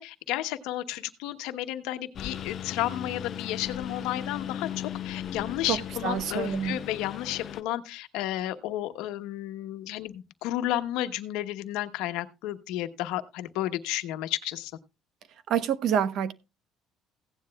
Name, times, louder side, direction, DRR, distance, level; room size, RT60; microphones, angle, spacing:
voice 1, 0.0-14.7, left 14 dB, 90° left, 0.9 m, -32 dB
Engine, 2.2-7.6, left 9 dB, 45° left, 0.5 m, -37 dB
voice 2, 5.7-6.8 15.5-16.3, right 8 dB, 60° right, 0.9 m, -27 dB
16.5 x 9.7 x 2.3 m
cardioid pair, 140°, 0 cm